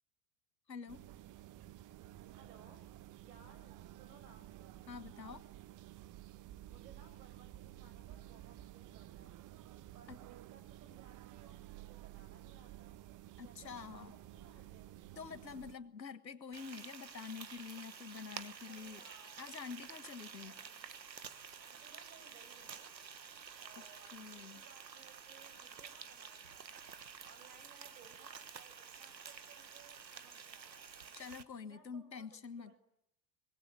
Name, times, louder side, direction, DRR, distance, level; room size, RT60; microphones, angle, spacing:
voice 1, 0.7-1.1 4.9-5.4 10.1-10.2 13.4-14.1 15.2-19.0 19.4-20.5 23.7-23.8 24.1-24.6 31.1-32.7, left 6 dB, 90° left, 12 dB, 1.5 m, -47 dB
sound 1, 0.9-15.8, right 14 dB, 40° right, 1.1 m, -53 dB
voice 2, 2.3-2.8 3.2-4.5 6.7-9.4 9.9-13.0 13.4-14.1 14.3-14.9 18.6-19.5 20.4-20.8 21.6-23.0 23.6-30.9 31.6-32.3 32.6-32.8, right 5 dB, 70° right, 9 dB, 6.3 m, -63 dB
Frying (food), 16.5-31.4, right 6 dB, 90° right, 1.3 m, -51 dB
24.0 x 21.5 x 8.8 m, 0.78 s
figure-of-eight pair, 80°, 49 cm